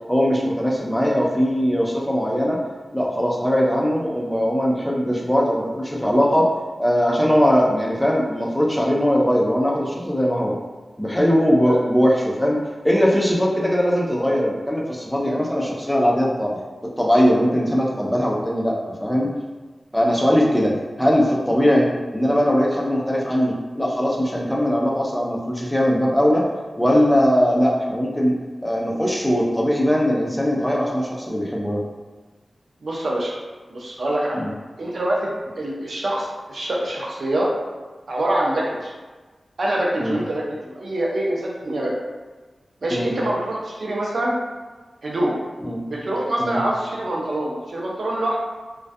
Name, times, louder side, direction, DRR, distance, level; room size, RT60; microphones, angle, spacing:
voice 1, 0.1-2.6 2.9-6.5 6.8-10.5 11.0-12.6 12.8-19.3 19.9-21.9 22.1-26.4 26.8-28.3 28.6-31.8 34.3-34.5 40.0-40.2 42.9-43.1 45.6-45.8 46.4-46.6, equal, 5° left, -3 dB, 0.5 m, -20 dB
voice 2, 32.8-33.3 33.7-34.4 34.8-35.3 35.6-37.5 38.1-38.9 39.6-41.9 42.8-44.4 45.0-45.4 45.9-48.4, right 1 dB, 70° right, -3 dB, 0.5 m, -25 dB
2.3 x 2.2 x 2.5 m, 1.3 s
wide cardioid pair, 75°, 0 cm